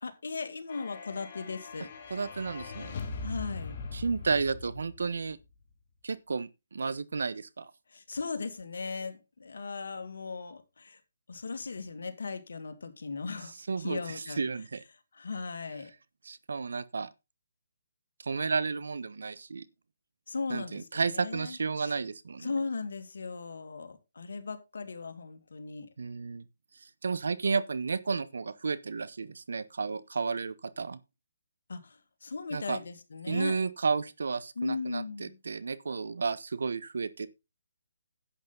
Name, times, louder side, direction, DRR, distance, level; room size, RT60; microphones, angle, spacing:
voice 1, 0.0-1.9 3.2-3.8 7.9-11.0 11.3-14.4 15.1-15.9 20.3-21.9 22.4-25.9 31.7-33.6 34.6-35.4, left 4 dB, 70° left, 2.3 m, -37 dB
sound 1, 0.7-5.4, left 4 dB, 40° left, 2.5 m, -41 dB
voice 2, 2.1-2.9 3.9-5.4 6.0-7.7 13.7-14.8 16.3-17.1 18.2-19.7 20.5-22.5 26.0-26.4 26.8-31.0 32.5-32.8 33.3-37.3, right 4 dB, 70° right, 1.2 m, -32 dB
11.0 x 8.6 x 4.0 m
hypercardioid pair, 155°, 0 cm